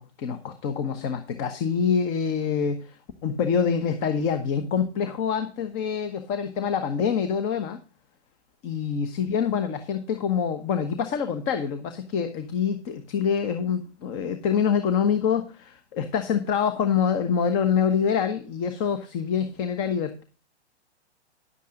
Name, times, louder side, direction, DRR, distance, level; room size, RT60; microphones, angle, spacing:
voice 1, 0.0-7.8 8.6-20.2, left 7 dB, 35° left, 8 dB, 1.1 m, -26 dB
11.0 x 8.2 x 3.8 m, 0.35 s
hypercardioid pair, 125°, 34 cm